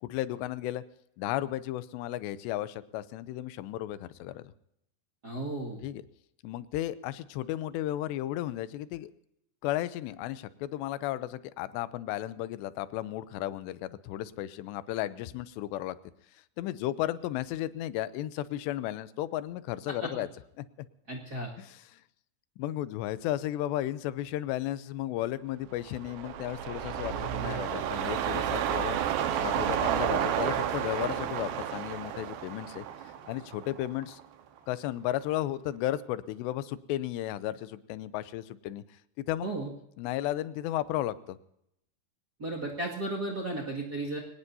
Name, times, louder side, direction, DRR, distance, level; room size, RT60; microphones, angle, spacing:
voice 1, 0.0-0.8 1.2-4.5 5.8-6.0 6.4-9.1 9.6-16.0 16.6-20.3 20.6-20.7 21.6-22.0 22.6-29.0 29.4-32.9 33.3-34.2 34.7-38.8 39.2-39.5 40.0-41.4, left 14 dB, 90° left, 15 dB, 2.9 m, -34 dB
voice 2, 5.2-5.8 21.1-21.5 39.4-39.7 42.4-44.2, right 2 dB, 35° right, -2 dB, 1.6 m, -34 dB
sound 1, 25.8-34.2 34.6-34.7, right 9 dB, 85° right, 3.3 m, -31 dB
23.5 x 19.0 x 2.7 m, 0.78 s
omnidirectional pair, 4.8 m